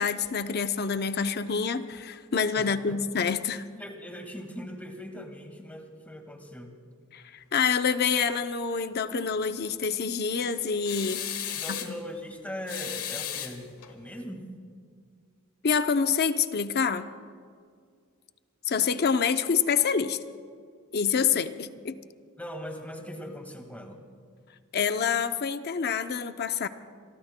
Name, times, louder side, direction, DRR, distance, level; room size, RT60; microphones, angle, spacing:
voice 1, 0.0-3.8 7.1-11.2 11.7-11.8 15.6-17.1 18.6-20.2 20.9-22.0 24.7-26.7, left 6 dB, 45° left, 9 dB, 0.6 m, -27 dB
voice 2, 2.6-3.0 3.8-6.8 11.5-14.6 22.4-24.0, equal, 5° left, 3 dB, 1.8 m, -40 dB
sound 1, 10.9-12.0 12.7-13.9, left 10 dB, 80° left, 1.4 m, -35 dB
27.0 x 23.0 x 2.2 m, 2.1 s
head